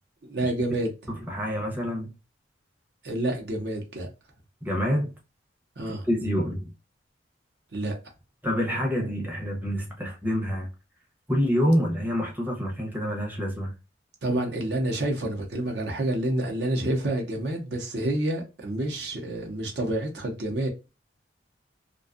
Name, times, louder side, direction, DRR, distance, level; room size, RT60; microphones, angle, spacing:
voice 1, 0.3-0.9 3.0-4.1 5.8-6.1 7.7-8.0 14.2-20.7, right 1 dB, 65° right, 0.7 m, -28 dB
voice 2, 1.1-2.1 4.6-5.1 5.9-6.7 8.4-10.7 11.3-13.7, equal, 10° right, 0.6 m, -27 dB
2.6 x 2.3 x 2.3 m
head